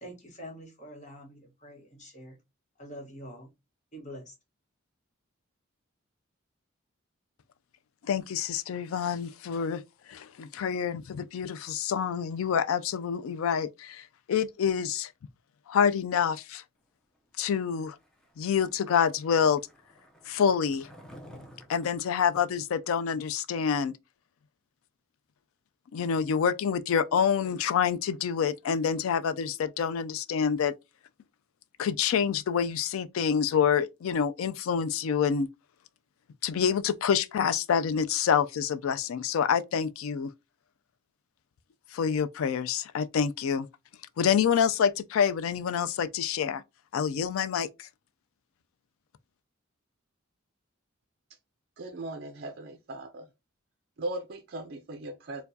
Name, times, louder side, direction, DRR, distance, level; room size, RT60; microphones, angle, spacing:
voice 1, 0.0-2.4 2.8-3.5 3.9-4.3, equal, 35° left, 1.1 m, -45 dB
voice 2, 8.0-9.8 10.1-15.1 15.7-16.6 17.4-18.0 18.4-19.6 20.3-20.9 21.7-23.9 25.9-30.7 31.8-35.5 36.4-40.3 41.9-43.7 44.2-46.6 46.9-47.9, left 7 dB, 90° left, 0.3 m, -27 dB
Skateboard, 17.9-23.3, equal, 5° left, 0.5 m, -53 dB
voice 3, 51.8-53.3 54.0-55.4, right 2 dB, 50° right, 0.5 m, -38 dB
4.5 x 2.2 x 2.6 m
head